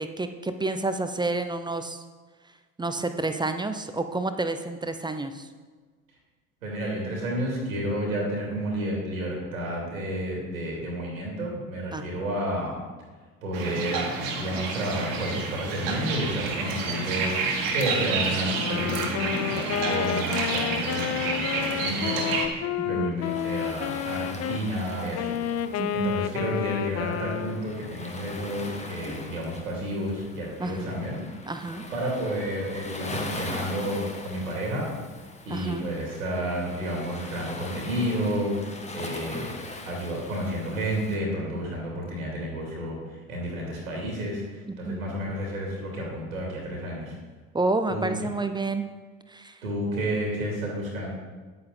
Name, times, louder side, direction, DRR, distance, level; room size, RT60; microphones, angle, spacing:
voice 1, 0.0-2.0 2.8-5.5 11.9-12.0 23.0-23.3 25.8-26.2 30.6-30.9 31.5-31.9 35.5-35.9 44.7-45.0 47.5-48.9 49.3-49.6, right 2 dB, 10° right, 8 dB, 0.6 m, -29 dB
voice 2, 6.6-12.8 13.4-14.1 14.4-25.3 25.9-31.2 31.9-34.9 35.4-39.6 39.8-47.2 47.9-48.1 49.6-51.1, equal, 85° right, -2 dB, 2.6 m, -31 dB
sound 1, 13.5-22.5, right 4 dB, 55° right, 1.8 m, -29 dB
Wind instrument woodwind instrument, 18.5-24.6 25.1-27.8, left 12 dB, 40° left, 0.6 m, -30 dB
Waves surf, 23.2-41.2, left 2 dB, 15° left, 1.4 m, -41 dB
9.5 x 8.7 x 3.9 m, 1.4 s
figure-of-eight pair, 60°, 41 cm